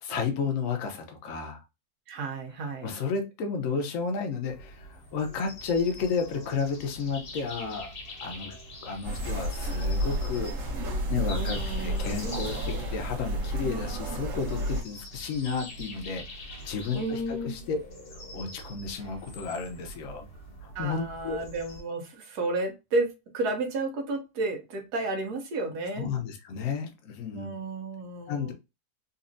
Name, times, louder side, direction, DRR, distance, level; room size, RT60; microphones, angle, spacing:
voice 1, 0.0-1.6 2.8-4.9 5.1-7.9 8.2-8.5 8.8-10.7 11.1-16.2 16.6-17.8 18.3-20.3 20.6-21.4 26.0-27.6 28.3-28.5, left 5 dB, 60° left, 4 dB, 1.1 m, -32 dB
voice 2, 2.1-2.9 11.3-12.4 16.9-17.6 20.7-26.1 27.3-28.5, right 2 dB, 80° right, 4 dB, 1.4 m, -32 dB
sound 1, 4.4-21.8, left 1 dB, 85° left, 1.8 m, -44 dB
sound 2, 9.0-14.8, equal, 60° right, 1.4 m, -31 dB
4.1 x 2.5 x 2.6 m, 0.26 s
omnidirectional pair, 1.7 m